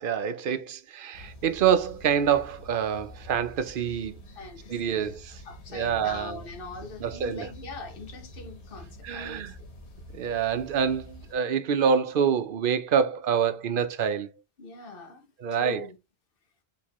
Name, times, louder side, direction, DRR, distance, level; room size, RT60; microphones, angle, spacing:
voice 1, 0.0-4.2 4.7-5.4 5.7-6.4 7.0-7.5 9.0-9.5 10.1-14.3 15.4-15.8, right 7 dB, 60° right, 0.7 m, -26 dB
sound 1, 1.1-11.4, left 1 dB, 75° left, 1.4 m, -47 dB
voice 2, 4.4-5.1 5.4-9.7 14.6-16.0, left 2 dB, 55° left, 1.1 m, -42 dB
4.5 x 3.0 x 2.9 m
omnidirectional pair, 1.1 m